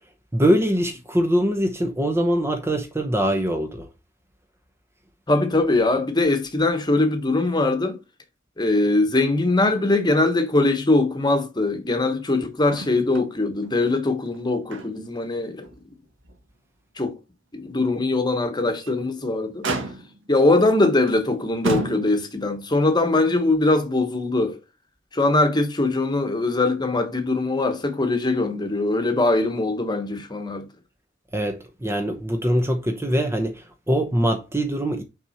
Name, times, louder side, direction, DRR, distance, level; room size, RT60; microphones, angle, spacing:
voice 1, 0.3-3.9 31.3-35.0, equal, 15° right, 0.8 m, -23 dB
voice 2, 5.3-8.0 8.6-15.7 17.0-17.1 17.5-19.6 20.3-24.6 25.1-30.6, left 2 dB, 20° left, 1.2 m, -21 dB
Motor vehicle (road), 12.7-13.3 13.6-13.7 14.3-15.2 15.6-15.8 16.3-16.4 18.6-19.1 19.6-20.3 21.1-21.2 21.6-22.4 23.5-23.6, right 2 dB, 80° right, 1.6 m, -31 dB
6.0 x 5.3 x 4.3 m
head